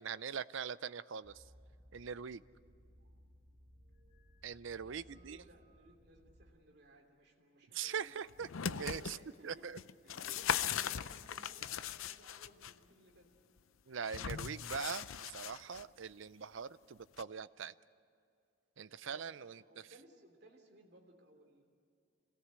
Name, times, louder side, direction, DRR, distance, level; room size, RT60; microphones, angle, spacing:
voice 1, 0.0-1.4 1.9-2.4 4.4-5.4 7.7-9.2 9.4-9.8 13.9-17.7 18.8-19.9, right 6 dB, 70° right, 16 dB, 0.5 m, -42 dB
sound 1, 1.2-6.5, equal, 35° right, 2.0 m, -62 dB
voice 2, 4.8-8.1 9.0-9.7 10.0-13.3 19.0-19.2 19.6-21.6, right 1 dB, 50° right, 3 dB, 3.0 m, -61 dB
sound 2, 8.3-9.2 9.8-12.7 14.1-15.8 17.2-17.3, left 8 dB, 85° left, 0.6 m, -39 dB
26.5 x 17.5 x 8.2 m, 2.5 s
head